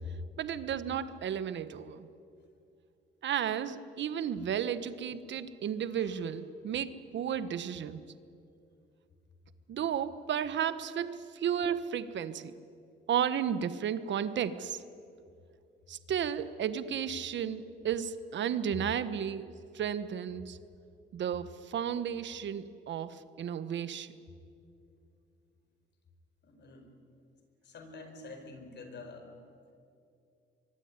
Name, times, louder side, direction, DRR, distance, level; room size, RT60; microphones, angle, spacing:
voice 1, 0.4-2.1 3.2-8.0 9.7-12.5 13.1-14.8 15.9-20.6 21.1-24.1, right 8 dB, 65° right, 13 dB, 1.4 m, -33 dB
voice 2, 26.4-26.9 27.6-29.4, left 3 dB, 60° left, 6 dB, 5.1 m, -48 dB
24.5 x 22.5 x 9.7 m, 2.5 s
cardioid pair, 90°, 20 cm